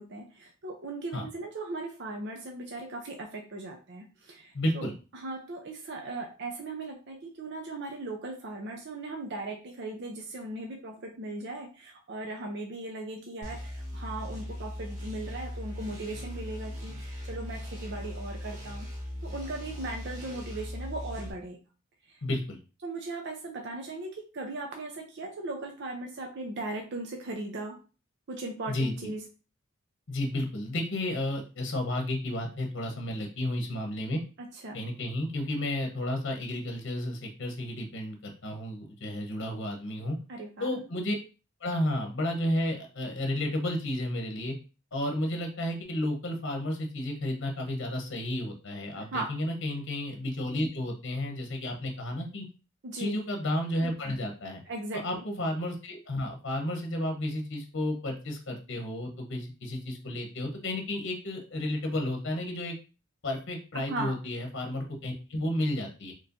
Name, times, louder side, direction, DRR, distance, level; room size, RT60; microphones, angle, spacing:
voice 1, 0.0-4.9 5.1-18.9 19.2-21.6 22.8-27.8 28.3-29.2 34.4-34.8 40.3-40.7 49.0-49.3 52.8-53.2 54.7-55.2 63.9-64.2, right 2 dB, 55° right, 2 dB, 0.7 m, -38 dB
voice 2, 4.5-4.9 22.2-22.6 28.7-29.1 30.1-34.2 34.7-40.2 40.6-41.1 41.6-44.5 44.9-52.5 53.0-54.6 54.9-62.7 63.2-66.1, left 1 dB, 60° left, 3 dB, 0.9 m, -32 dB
sound 1, 13.4-21.3, equal, 35° right, 1.7 m, -39 dB
4.2 x 3.1 x 2.6 m, 0.33 s
head